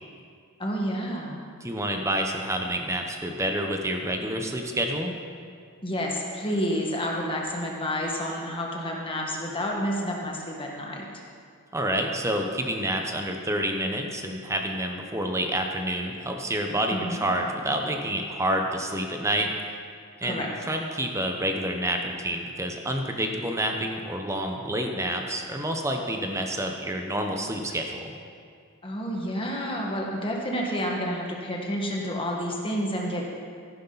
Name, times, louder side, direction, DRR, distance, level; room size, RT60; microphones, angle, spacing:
voice 1, 0.6-1.4 5.8-11.1 16.9-17.2 20.2-20.5 28.8-33.3, equal, 25° left, -1 dB, 1.7 m, -29 dB
voice 2, 1.6-5.1 11.7-19.5 20.2-28.1, right 1 dB, 15° right, 3 dB, 0.9 m, -28 dB
14.5 x 11.5 x 4.1 m, 2.2 s
head